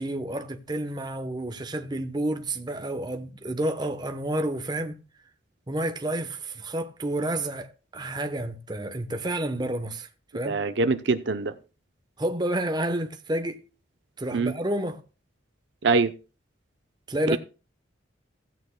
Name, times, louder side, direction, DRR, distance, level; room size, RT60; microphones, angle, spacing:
voice 1, 0.0-5.0 5.7-10.1 10.3-10.6 12.2-13.6 14.2-15.0 17.1-17.4, right 1 dB, 20° right, 0.9 m, -30 dB
voice 2, 10.4-11.5 14.3-14.5 15.8-16.1 17.3-17.4, right 4 dB, 65° right, 0.6 m, -23 dB
16.0 x 9.1 x 2.2 m
head